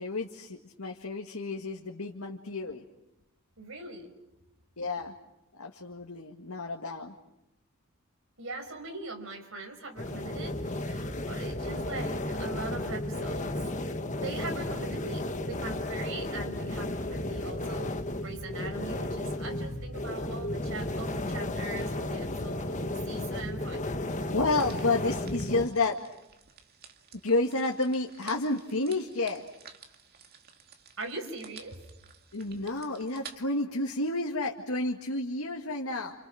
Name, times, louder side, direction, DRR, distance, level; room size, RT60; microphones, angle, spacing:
voice 1, 0.0-2.8 4.8-5.1 5.6-7.2 24.3-26.0 27.2-29.4 32.3-36.1, left 2 dB, 85° left, 1 dB, 2.0 m, -30 dB
voice 2, 3.6-4.1 8.4-13.5 14.1-17.9 18.2-23.8 31.0-31.8, right 3 dB, 65° right, 4 dB, 5.6 m, -41 dB
sound 1, 10.0-25.7, left 1 dB, 35° left, 1.4 m, -33 dB
sound 2, 24.5-33.4, right 6 dB, 45° right, 2.3 m, -52 dB
30.0 x 29.0 x 6.4 m, 0.88 s
head